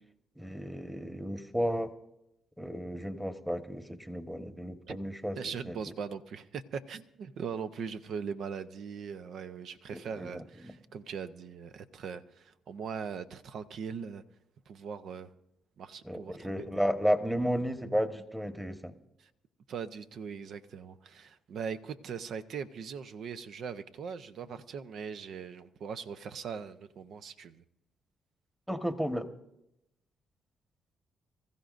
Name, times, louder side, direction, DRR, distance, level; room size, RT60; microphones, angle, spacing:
voice 1, 0.4-1.9 2.6-5.4 5.6-5.7 9.9-10.8 16.0-18.9 28.7-29.3, equal, 5° right, 8 dB, 1.3 m, -33 dB
voice 2, 5.4-14.2 14.7-15.3 15.8-16.8 19.2-19.3 19.7-27.6, right 6 dB, 70° right, 11 dB, 0.7 m, -40 dB
25.5 x 14.5 x 2.6 m, 0.83 s
supercardioid pair, 65°, 0 cm